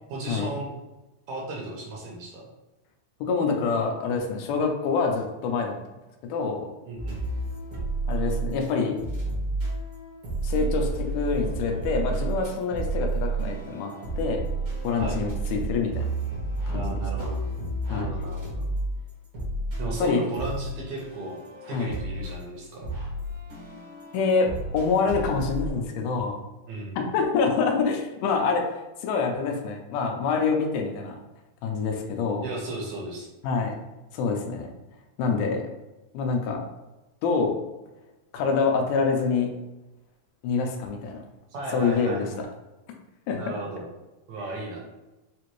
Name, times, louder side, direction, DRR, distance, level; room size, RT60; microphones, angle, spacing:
voice 1, 0.1-0.7 1.3-2.4 6.9-7.2 15.0-15.2 16.7-17.5 17.9-18.7 19.8-21.4 21.7-22.9 26.7-27.0 32.4-33.3 41.5-42.4 43.4-43.9 44.3-44.8, right 2 dB, 70° right, -2 dB, 1.8 m, -35 dB
voice 2, 3.2-5.7 6.3-6.7 8.1-9.0 10.4-14.4 14.8-16.1 16.7-17.3 17.9-18.1 20.0-20.2 21.7-21.9 24.1-26.4 27.0-28.7 29.0-31.2 31.6-32.4 33.4-33.8 34.1-34.7 35.2-35.6 36.1-36.6 37.2-37.5 38.3-39.5 40.4-41.2 41.7-42.3 43.3-43.4, left 5 dB, 85° left, 2 dB, 2.2 m, -26 dB
sound 1, 7.0-8.7 9.0-25.7, right 2 dB, 55° right, 1.0 m, -31 dB
5.5 x 2.5 x 3.0 m, 1.1 s
omnidirectional pair, 3.6 m